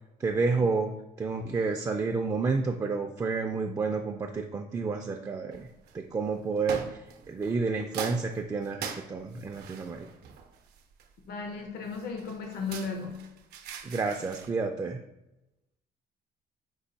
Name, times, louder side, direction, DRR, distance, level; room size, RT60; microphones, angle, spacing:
voice 1, 0.2-0.9 1.2-5.7 5.9-10.1 13.8-15.0, right 4 dB, 20° right, 4 dB, 0.3 m, -30 dB
sound 1, 5.5-6.0 6.7-7.6 7.9-11.3 11.9-14.5, right 7 dB, 70° right, 0.6 m, -41 dB
voice 2, 11.3-13.2, left 4 dB, 70° left, 3 dB, 0.7 m, -35 dB
5.3 x 2.2 x 4.0 m, 0.94 s
cardioid pair, 110°, 17 cm